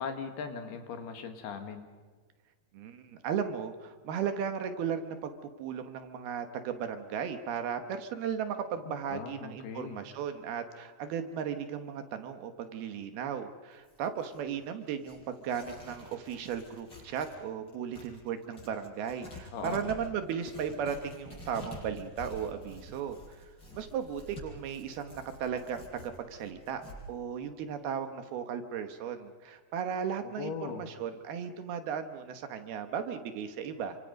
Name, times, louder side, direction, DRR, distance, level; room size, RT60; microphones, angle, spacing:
voice 1, 0.0-1.9 8.9-10.0 19.5-19.8 30.4-30.8, left 6 dB, 70° left, 6 dB, 3.6 m, -39 dB
voice 2, 2.7-5.3 5.6-23.4 23.7-26.8 27.1-34.0, right 7 dB, 70° right, 8 dB, 3.0 m, -36 dB
Tearing, 13.7-17.4 17.7-27.0, left 1 dB, 25° left, 7.6 m, -49 dB
29.5 x 25.5 x 5.3 m, 1.5 s
omnidirectional pair, 5.0 m